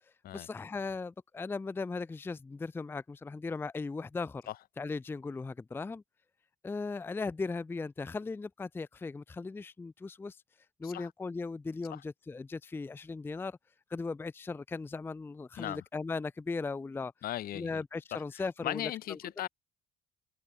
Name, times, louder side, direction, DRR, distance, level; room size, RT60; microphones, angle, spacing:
voice 1, 0.3-4.4 4.8-6.0 6.6-10.4 10.8-13.6 13.9-17.1 17.5-19.2, left 4 dB, 15° left, 0.4 m, -37 dB
voice 2, 17.2-17.8 18.1-18.2 18.6-19.5, left 13 dB, 60° left, 0.9 m, -37 dB
cardioid pair, 110°, 17 cm